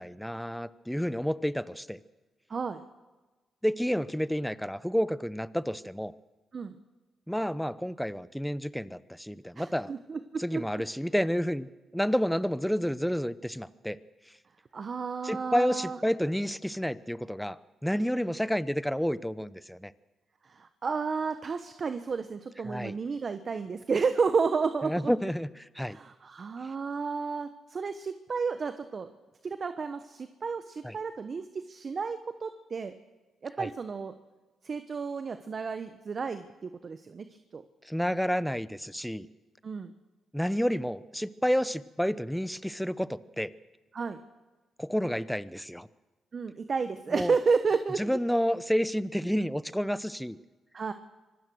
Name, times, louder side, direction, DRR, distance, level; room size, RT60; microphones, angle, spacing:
voice 1, 0.0-2.0 3.6-6.1 7.3-9.9 10.4-14.0 15.2-19.9 22.6-22.9 24.8-26.0 30.8-31.0 33.6-33.7 37.8-39.3 40.3-43.5 44.8-45.9 47.1-47.3 48.0-50.4, equal, ahead, 16 dB, 0.8 m, -30 dB
voice 2, 2.5-2.8 6.5-6.8 9.6-10.6 14.7-16.0 20.5-25.1 25.9-29.1 29.4-32.9 33.4-34.1 34.6-37.2 37.5-37.6 39.6-39.9 43.9-44.2 46.3-48.2 50.7-50.9, right 5 dB, 50° right, 10 dB, 1.1 m, -31 dB
25.5 x 18.0 x 6.4 m, 1.2 s
supercardioid pair, 65°, 0 cm